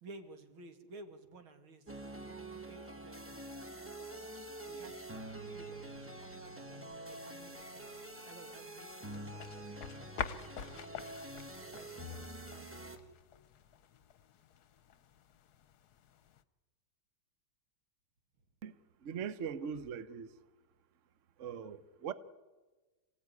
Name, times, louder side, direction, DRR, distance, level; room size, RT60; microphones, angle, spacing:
voice 1, 0.0-1.9 2.2-3.6 4.7-7.9 8.3-11.1 11.6-12.8, right 3 dB, 80° right, 3.0 m, -56 dB
sound 1, 1.9-13.0, right 1 dB, 5° right, 1.5 m, -46 dB
sound 2, 9.1-16.4, left 7 dB, 60° left, 1.3 m, -47 dB
voice 2, 19.0-20.3 21.4-22.1, right 7 dB, 50° right, 0.9 m, -40 dB
26.5 x 16.5 x 9.6 m
omnidirectional pair, 2.2 m